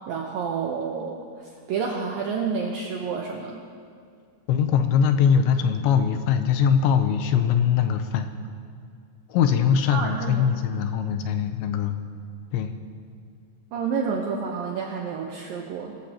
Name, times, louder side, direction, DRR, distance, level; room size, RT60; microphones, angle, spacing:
voice 1, 0.1-3.6 9.9-10.5 13.7-16.0, right 5 dB, 80° right, 0 dB, 2.1 m, -29 dB
voice 2, 4.5-8.3 9.3-12.0 12.5-12.7, left 7 dB, 80° left, 8 dB, 2.9 m, -22 dB
22.0 x 15.0 x 2.9 m, 2.3 s
omnidirectional pair, 5.4 m